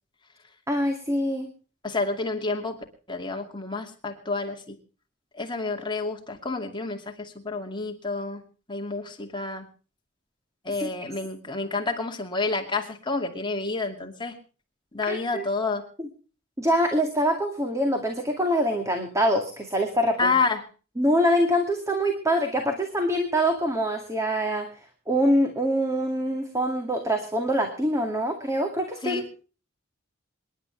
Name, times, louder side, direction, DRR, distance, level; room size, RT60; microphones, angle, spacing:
voice 1, 0.7-1.5 10.8-10.9 15.1-15.4 16.0-16.1 16.6-20.4 21.0-24.7 25.1-29.2, equal, 15° right, 4 dB, 2.2 m, -24 dB
voice 2, 1.8-2.8 3.1-4.8 5.3-8.4 8.7-9.7 10.6-14.4 14.9-15.9 20.2-20.6 29.0-29.2, left 3 dB, 25° left, 3 dB, 2.5 m, -29 dB
27.0 x 11.5 x 3.3 m, 0.37 s
head